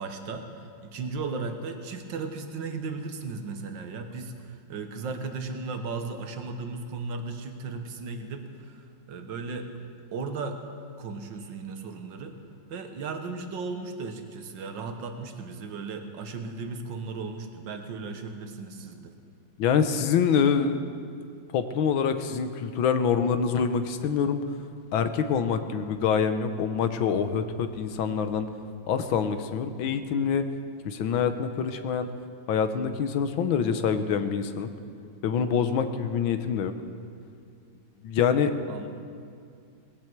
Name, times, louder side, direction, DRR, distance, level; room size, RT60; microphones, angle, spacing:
voice 1, 0.0-9.7 10.1-10.6 11.0-12.4 12.7-19.1 38.7-38.9, right 4 dB, 70° right, 6 dB, 1.9 m, -36 dB
voice 2, 19.6-20.8 21.5-24.4 24.9-28.5 28.9-30.4 30.9-32.1 32.5-34.7 35.2-36.7 38.0-38.5, left 7 dB, 85° left, 9 dB, 1.7 m, -25 dB
19.5 x 16.0 x 4.6 m, 2.3 s
omnidirectional pair, 2.1 m